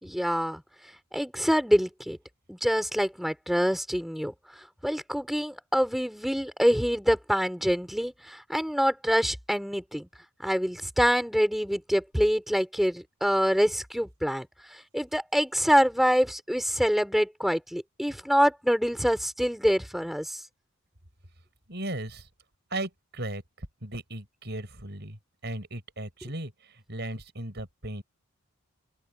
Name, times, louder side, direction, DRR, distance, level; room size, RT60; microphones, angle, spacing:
voice 1, 0.0-0.6 1.1-2.2 2.5-10.1 10.4-20.4, equal, ahead, 4.3 m, -26 dB
voice 2, 21.7-22.3 22.7-28.0, right 1 dB, 50° right, 6.4 m, -37 dB
open air
head